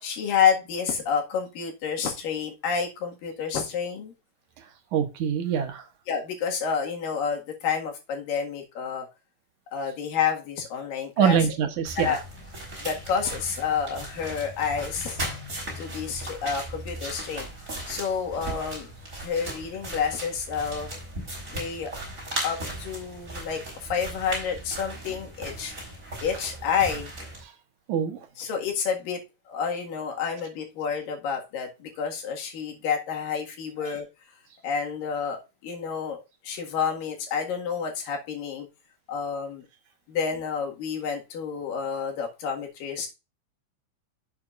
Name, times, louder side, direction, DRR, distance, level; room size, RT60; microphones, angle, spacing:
voice 1, 0.0-4.1 6.1-9.1 9.7-11.4 12.0-12.2 12.8-15.2 15.8-17.5 17.9-18.9 19.2-20.9 21.5-21.9 22.4-25.7 26.2-27.1 28.4-29.2 29.5-34.1 34.6-36.2 36.4-38.7 39.1-39.7 40.1-43.1, left 6 dB, 80° left, 3.5 m, -29 dB
voice 2, 4.6-5.9 11.2-12.2 27.4-27.5 27.9-28.3 33.8-34.0, right 8 dB, 70° right, 2.5 m, -25 dB
sound 1, 11.8-27.4, right 1 dB, 20° right, 4.3 m, -37 dB
11.0 x 7.6 x 2.5 m
omnidirectional pair, 3.8 m